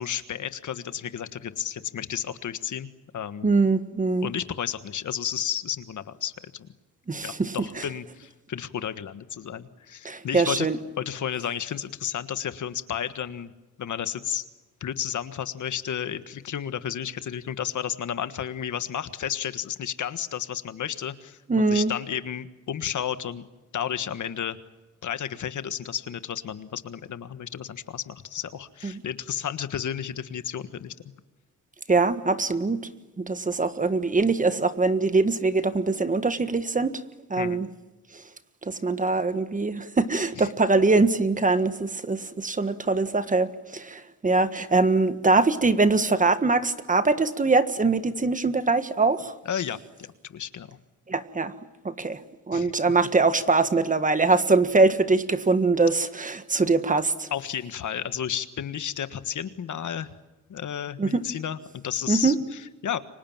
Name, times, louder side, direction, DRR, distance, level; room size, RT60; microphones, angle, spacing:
voice 1, 0.0-3.5 4.2-6.7 7.2-10.7 11.0-13.5 13.8-14.5 14.8-23.4 23.7-24.6 25.0-30.9 37.4-37.6 40.4-40.5 49.4-50.8 52.5-52.7 57.3-60.1 60.5-63.0, left 9 dB, 65° left, 12 dB, 1.6 m, -32 dB
voice 2, 3.4-4.3 7.1-7.8 10.0-10.8 21.5-21.9 28.8-29.0 31.9-32.8 33.2-37.0 37.3-37.7 38.6-49.3 51.1-51.5 51.8-52.2 52.5-57.3 61.0-61.2 62.1-62.4, right 3 dB, 25° right, 11 dB, 1.5 m, -23 dB
30.0 x 25.0 x 7.4 m, 1.1 s
wide cardioid pair, 150°, 32 cm